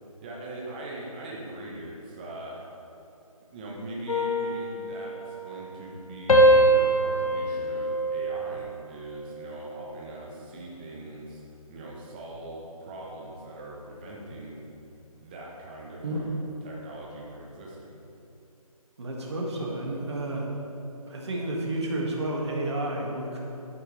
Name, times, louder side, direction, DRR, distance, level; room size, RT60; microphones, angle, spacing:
voice 1, 0.2-2.7 3.5-11.4 11.7-14.6 15.2-16.3 16.6-18.0, right 1 dB, 15° right, -4 dB, 1.0 m, -41 dB
sound 1, 4.1-6.0 6.3-8.9 9.3-9.7, right 1 dB, 65° left, 1.2 m, -24 dB
voice 2, 16.0-16.5 19.0-20.5 21.1-23.4, right 1 dB, 45° right, -2 dB, 2.0 m, -31 dB
12.0 x 9.2 x 3.4 m, 2.8 s
figure-of-eight pair, 160°, 19 cm